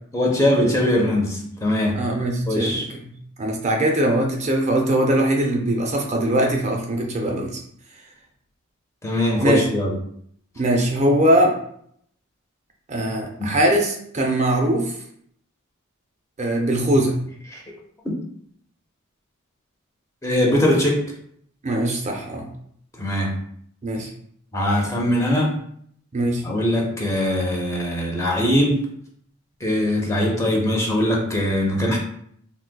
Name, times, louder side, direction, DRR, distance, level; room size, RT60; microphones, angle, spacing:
voice 1, 0.1-2.1 2.5-2.9 9.0-9.9 13.4-13.6 17.5-17.6 18.0-18.1 20.2-21.1 23.0-23.3 24.5-25.6 26.4-28.8 29.6-32.0, left 1 dB, 15° left, -1 dB, 0.5 m, -21 dB
voice 2, 1.9-7.6 9.4-9.6 10.6-11.5 12.9-14.9 16.4-17.2 21.6-22.5 23.8-24.1 26.1-26.4, right 1 dB, 35° right, 1 dB, 0.5 m, -21 dB
3.9 x 2.6 x 2.2 m, 0.67 s
head